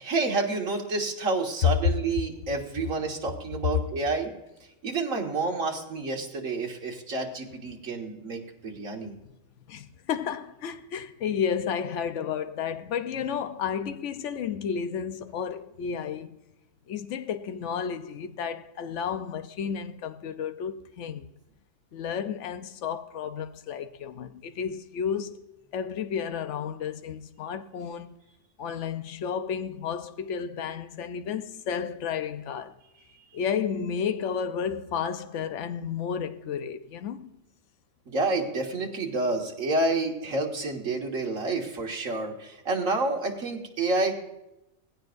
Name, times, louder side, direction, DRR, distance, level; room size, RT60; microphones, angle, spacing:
voice 1, 0.0-4.3 4.8-9.2 38.1-44.1, right 3 dB, 75° right, 2.1 m, -29 dB
voice 2, 9.7-16.4 16.9-21.3 21.9-25.5 25.7-28.1 28.6-32.7 33.3-37.3, left 7 dB, 65° left, 1.1 m, -32 dB
19.5 x 16.0 x 2.6 m
omnidirectional pair, 1.4 m